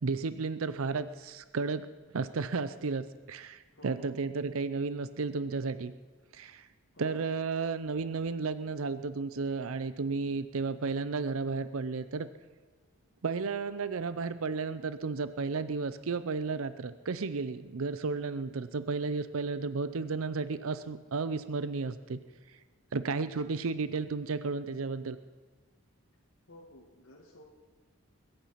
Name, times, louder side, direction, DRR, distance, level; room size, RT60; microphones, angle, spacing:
voice 1, 0.0-1.9 2.1-5.9 6.3-6.7 7.0-12.3 13.2-22.2 22.9-25.2, right 4 dB, 80° right, 13 dB, 0.6 m, -33 dB
voice 2, 3.7-4.3 6.9-7.3 26.5-27.4, left 1 dB, 60° left, -3 dB, 1.8 m, -53 dB
21.5 x 8.9 x 5.7 m, 1.4 s
head